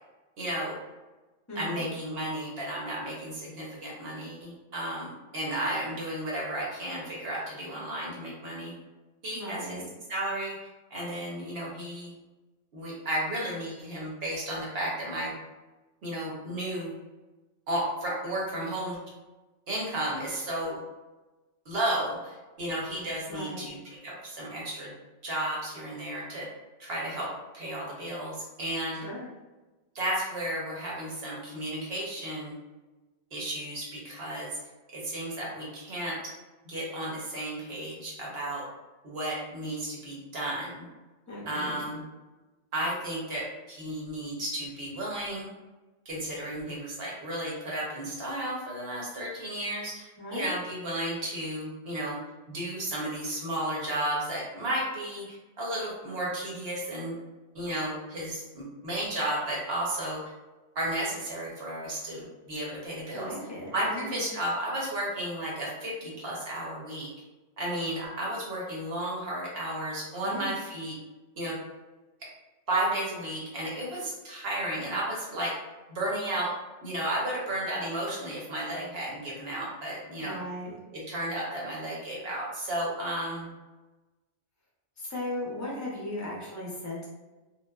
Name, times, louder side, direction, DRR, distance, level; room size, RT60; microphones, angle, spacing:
voice 1, 0.4-0.8 1.5-8.7 9.2-9.8 10.1-12.1 12.7-15.3 16.0-16.9 17.7-19.0 19.7-20.8 21.7-23.8 24.0-24.9 25.2-26.5 26.8-29.0 29.9-32.5 33.3-34.6 34.9-36.3 36.6-38.6 39.0-40.9 41.5-42.1 42.7-45.5 46.1-52.2 52.5-57.1 57.5-60.2 60.7-63.3 63.7-67.1 67.6-71.0 71.4-71.6 72.7-75.6 75.9-76.5 76.8-80.4 80.9-83.5, right 1 dB, 60° right, -4 dB, 0.9 m, -33 dB
voice 2, 1.5-1.9 9.3-9.8 23.3-23.7 29.0-29.3 41.3-41.8 50.2-50.5 63.1-64.2 70.2-70.5 80.2-80.7 85.0-87.1, left 1 dB, 20° left, -5 dB, 0.5 m, -37 dB
2.9 x 2.0 x 2.2 m, 1.1 s
omnidirectional pair, 1.2 m